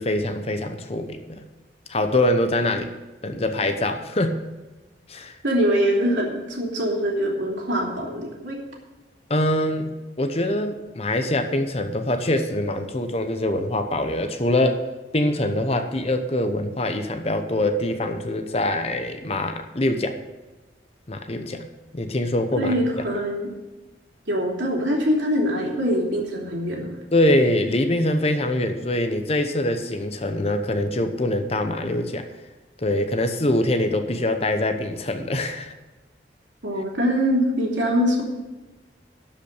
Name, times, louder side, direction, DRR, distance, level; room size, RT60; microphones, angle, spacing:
voice 1, 0.0-1.4 1.9-2.9 3.2-4.4 5.1-5.3 9.3-14.8 15.1-20.2 21.1-21.7 21.9-22.8 27.1-32.3 32.8-35.7, left 1 dB, 35° left, 7 dB, 0.9 m, -24 dB
voice 2, 5.4-8.6 22.6-23.5 24.3-27.0 36.6-38.2, equal, 80° right, -1 dB, 3.1 m, -23 dB
12.0 x 5.5 x 8.7 m, 1.1 s
head